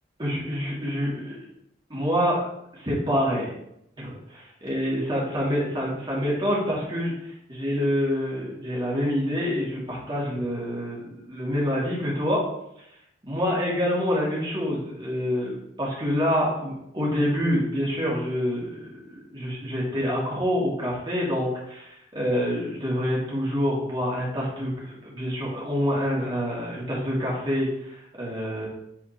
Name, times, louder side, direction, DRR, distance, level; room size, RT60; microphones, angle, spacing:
voice 1, 0.2-1.4 1.9-2.4 2.7-3.5 4.0-7.1 7.5-12.5 13.3-15.5 15.8-28.7, equal, 25° right, -5 dB, 2.1 m, -27 dB
8.5 x 4.2 x 2.9 m, 0.77 s
head